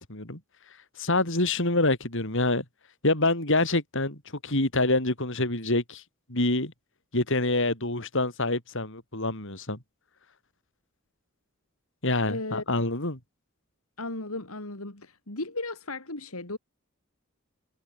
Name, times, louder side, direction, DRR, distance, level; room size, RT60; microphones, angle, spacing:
voice 1, 0.1-0.4 1.0-2.6 3.0-4.2 4.4-6.0 6.3-6.7 7.1-9.8 12.0-13.2, left 2 dB, 60° left, 5.9 m, -26 dB
voice 2, 12.3-12.6 14.0-16.6, left 2 dB, 80° left, 4.3 m, -35 dB
head